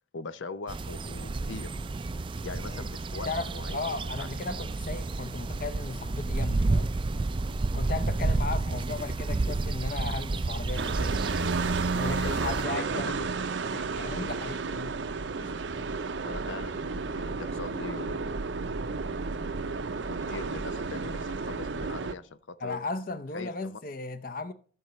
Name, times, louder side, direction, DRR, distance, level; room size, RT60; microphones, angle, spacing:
voice 1, 0.1-1.8 2.4-3.8 4.2-4.3 7.5-7.8 12.0-12.9 15.4-15.5 16.2-18.5 19.3-19.4 20.1-22.8 23.3-23.8, left 4 dB, 85° left, 0.7 m, -41 dB
sound 1, 0.7-12.6, right 3 dB, 25° right, 0.4 m, -31 dB
voice 2, 3.3-6.9 7.7-11.2 11.9-13.2 13.7-14.9 22.6-24.5, left 3 dB, 50° left, 0.7 m, -36 dB
sound 2, 10.8-22.1, right 4 dB, 75° right, 0.7 m, -32 dB
14.5 x 6.7 x 3.1 m
head